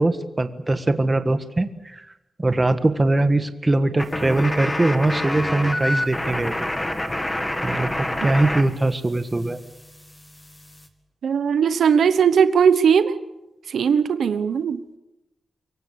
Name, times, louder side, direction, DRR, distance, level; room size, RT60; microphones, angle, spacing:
voice 1, 0.0-2.0 2.4-6.5 7.6-9.6, right 2 dB, 20° right, 9 dB, 1.5 m, -21 dB
sound 1, 4.0-8.6 8.9-10.9, left 1 dB, 15° left, 2.2 m, -28 dB
voice 2, 11.2-13.2 13.7-14.8, right 7 dB, 85° right, 12 dB, 1.1 m, -18 dB
25.5 x 23.0 x 7.0 m, 0.97 s
wide cardioid pair, 130°, 0 cm